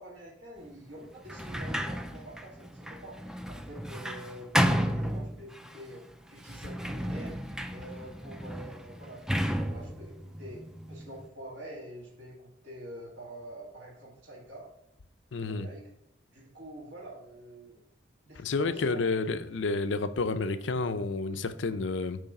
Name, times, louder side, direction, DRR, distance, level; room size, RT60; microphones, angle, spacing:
voice 1, 0.0-3.1 3.5-6.0 6.3-7.4 7.7-10.1 10.4-14.7 15.4-15.8 16.3-17.8 18.3-19.2, right 1 dB, 75° right, -5 dB, 2.1 m, -46 dB
Sliding door, 1.2-5.8 6.4-11.2, equal, 5° right, 0.3 m, -33 dB
voice 2, 15.3-15.7 18.4-22.2, left 3 dB, 80° left, 11 dB, 0.5 m, -30 dB
8.6 x 3.3 x 5.4 m, 0.78 s
head